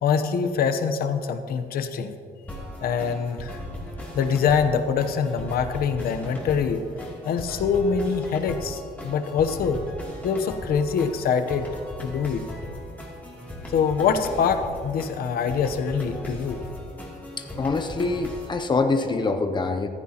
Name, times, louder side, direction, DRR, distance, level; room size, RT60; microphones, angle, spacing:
voice 1, 0.0-2.2 2.8-3.6 4.1-6.8 7.2-9.8 10.2-11.7 12.0-12.4 13.7-16.6, left 6 dB, 65° left, 8 dB, 0.9 m, -24 dB
sound 1, 2.5-18.5, left 1 dB, 10° left, 2.7 m, -38 dB
voice 2, 17.4-19.9, left 3 dB, 30° left, 7 dB, 0.6 m, -25 dB
14.5 x 14.5 x 2.9 m, 2.2 s
cardioid pair, 145°, 16 cm